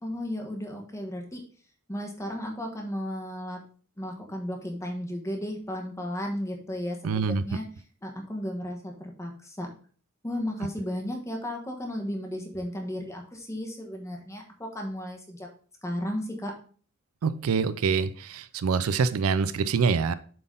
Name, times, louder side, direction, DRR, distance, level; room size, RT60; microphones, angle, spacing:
voice 1, 0.0-1.4 1.9-3.6 4.0-7.6 8.0-9.7 10.2-15.5 15.8-16.5, equal, 15° left, 2 dB, 1.1 m, -34 dB
voice 2, 7.0-7.4 17.2-20.1, right 5 dB, 75° right, 15 dB, 0.4 m, -25 dB
7.6 x 4.0 x 3.7 m, 0.43 s
head